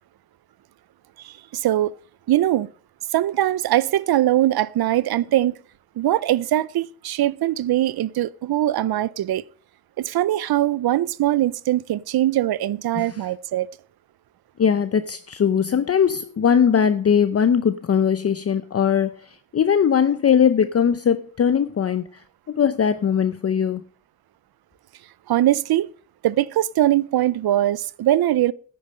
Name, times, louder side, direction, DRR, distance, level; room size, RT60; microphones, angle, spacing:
voice 1, 1.2-1.9 2.3-2.7 3.1-5.5 6.0-9.4 10.0-13.7 25.3-25.9 26.2-28.5, right 13 dB, 80° right, 0.6 m, -21 dB
voice 2, 12.9-13.3 14.6-22.2 22.5-23.8, left 7 dB, 40° left, 0.6 m, -20 dB
10.5 x 8.6 x 5.5 m
cardioid pair, 100°, 37 cm